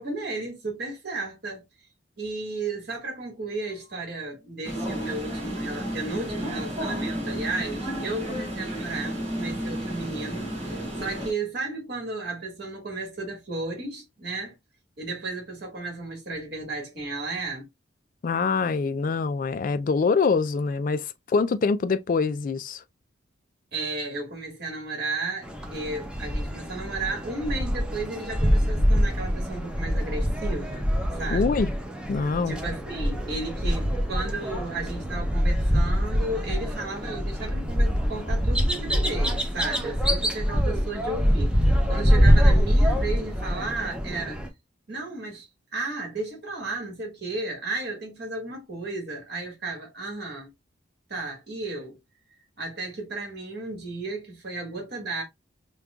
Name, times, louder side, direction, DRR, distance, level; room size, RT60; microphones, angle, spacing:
voice 1, 0.0-1.6 2.2-14.5 15.0-17.6 23.7-31.6 32.5-44.4 44.9-50.5 51.1-52.0 52.6-55.2, right 2 dB, 55° right, 1.8 m, -34 dB
sound 1, 4.6-11.3, right 1 dB, 30° right, 2.3 m, -32 dB
voice 2, 18.2-22.8 31.3-31.7 32.1-32.5, left 4 dB, 45° left, 0.3 m, -24 dB
sound 2, 25.4-44.5, equal, 5° right, 0.6 m, -24 dB
5.1 x 2.3 x 2.3 m
head